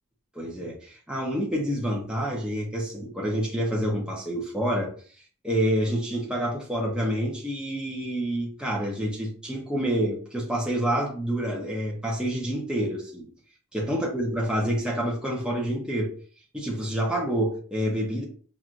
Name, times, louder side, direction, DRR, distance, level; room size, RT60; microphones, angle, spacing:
voice 1, 0.3-4.9 5.4-13.3 13.7-16.1 16.5-18.2, equal, 5° right, -3 dB, 0.8 m, -28 dB
5.9 x 2.5 x 2.5 m, 0.43 s
head